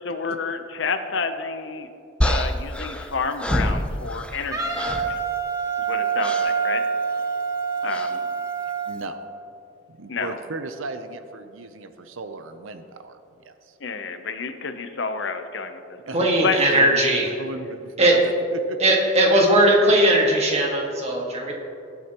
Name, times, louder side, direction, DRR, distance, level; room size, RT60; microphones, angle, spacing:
voice 1, 0.0-1.9 2.2-5.2 5.9-6.8 7.8-8.2 10.1-10.4 13.8-15.8 16.4-16.6, left 4 dB, 65° left, 8 dB, 0.7 m, -29 dB
sound 1, 2.2-4.5 4.7-5.2 6.2-6.5 7.9-8.2, left 1 dB, 5° left, 0.5 m, -26 dB
Wind instrument woodwind instrument, 4.5-9.0, right 6 dB, 20° right, 1.2 m, -26 dB
voice 2, 8.9-9.2 9.9-13.2 13.4-13.8 16.1-18.8, right 3 dB, 80° right, 9 dB, 0.7 m, -36 dB
voice 3, 16.1-17.3 18.0-18.1 18.8-21.5, right 1 dB, 35° right, -1 dB, 1.8 m, -18 dB
18.5 x 7.9 x 3.0 m, 2.7 s
head